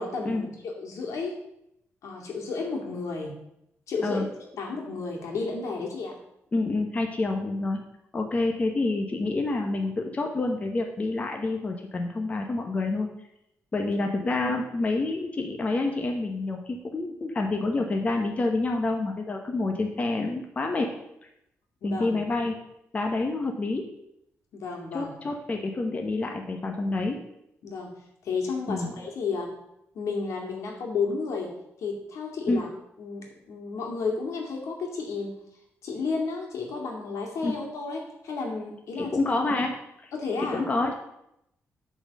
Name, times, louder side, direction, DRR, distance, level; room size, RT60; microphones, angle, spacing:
voice 1, 0.0-1.3 2.0-3.4 3.9-6.1 13.8-13.9 21.8-22.2 24.5-25.1 27.6-27.9 28.2-29.5 29.9-32.7 33.0-35.4 35.8-39.2 40.1-40.6, left 4 dB, 80° left, 0 dB, 2.3 m, -32 dB
voice 2, 6.5-7.8 8.1-13.1 13.7-20.9 21.8-22.6 22.9-23.8 24.9-27.2 28.7-28.9 32.5-32.6 37.4-37.6 39.0-39.7 40.0-40.1 40.4-40.9, left 2 dB, 30° left, 3 dB, 0.9 m, -28 dB
8.7 x 4.3 x 7.4 m, 0.80 s
wide cardioid pair, 150°, 5 cm